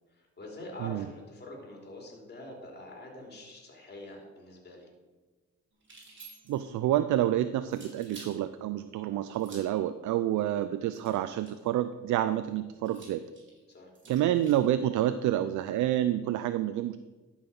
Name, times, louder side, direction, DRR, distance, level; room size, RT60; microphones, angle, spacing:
voice 1, 0.1-4.9 13.7-13.9, left 1 dB, 35° left, -1 dB, 3.6 m, -45 dB
sound 1, 5.8-6.7 7.7-8.4 9.3-9.8 10.9-11.7 12.9-14.7, right 3 dB, 40° right, 3.6 m, -51 dB
voice 2, 6.5-13.2 14.1-17.0, right 12 dB, 75° right, 12 dB, 0.5 m, -28 dB
12.5 x 5.7 x 6.0 m, 1.3 s
cardioid pair, 90°, 30 cm